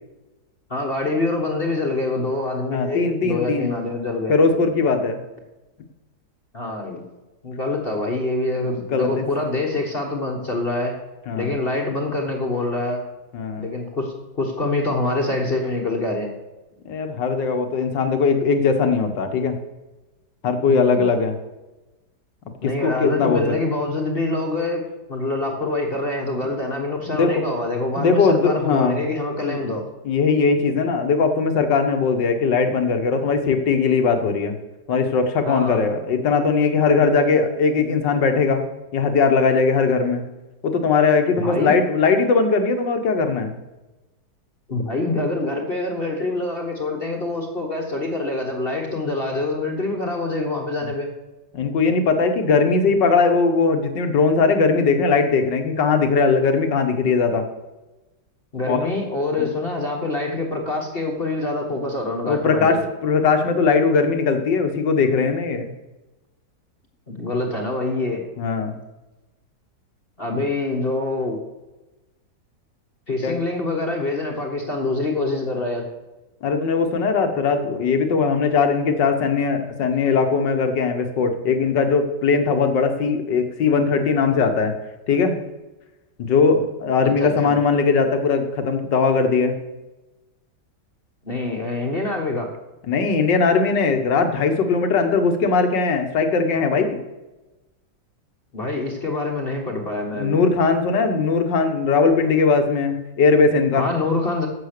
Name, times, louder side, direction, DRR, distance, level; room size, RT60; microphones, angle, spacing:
voice 1, 0.7-4.3 6.5-7.0 7.4-11.0 11.3-13.0 13.6-16.3 20.7-21.0 22.6-24.8 25.1-29.8 35.4-35.8 41.4-41.7 44.7-51.1 58.5-62.8 67.1-68.2 70.2-71.4 73.1-75.9 87.0-87.5 91.2-92.5 98.5-100.4 103.7-104.5, left 2 dB, 35° left, 1 dB, 1.5 m, -25 dB
voice 2, 2.7-3.7 4.3-5.2 8.9-9.2 11.3-11.6 13.3-13.7 16.9-19.6 20.4-21.4 22.6-23.6 27.1-27.5 28.0-29.0 29.5-29.6 30.1-34.6 34.9-38.6 38.9-40.2 40.6-43.6 51.5-57.5 58.7-58.9 59.4-59.5 62.3-65.7 68.4-68.8 73.2-73.4 76.4-84.7 85.1-85.3 86.2-89.5 92.9-97.0 100.2-103.9, left 4 dB, 85° left, 7 dB, 2.0 m, -19 dB
11.5 x 7.7 x 6.7 m, 1.1 s
omnidirectional pair, 1.9 m